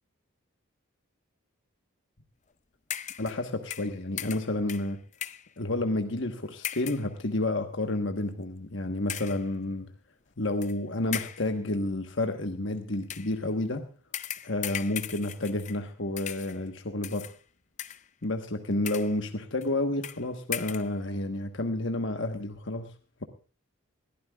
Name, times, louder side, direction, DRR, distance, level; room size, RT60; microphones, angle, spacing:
sound 1, 2.9-3.4 3.7-5.5 6.6-7.1 7.8-8.0 9.1-9.5 10.6-10.7 11.1-11.5 13.0-13.4 14.1-15.9 16.2-16.6 17.0-17.4 17.8-18.2 18.7-19.2 19.6-19.7 20.0-20.2 20.5-20.9, left 10 dB, 35° left, 0.5 m, -38 dB
voice 1, 3.2-5.0 5.6-9.9 10.4-13.8 14.4-17.3 18.2-22.9, left 2 dB, 60° left, 6 dB, 1.2 m, -30 dB
21.0 x 15.0 x 2.3 m, 0.37 s
head